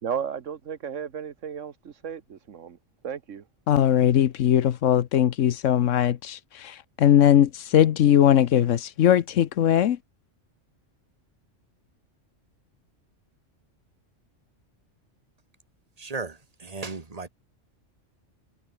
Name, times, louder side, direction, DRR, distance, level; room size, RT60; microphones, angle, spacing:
voice 1, 0.0-2.8 3.0-3.4, right 7 dB, 85° right, 1.6 m, -34 dB
voice 2, 3.7-10.0, left 10 dB, 85° left, 1.2 m, -20 dB
voice 3, 16.0-17.3, right 4 dB, 30° right, 1.7 m, -35 dB
omnidirectional pair, 1.3 m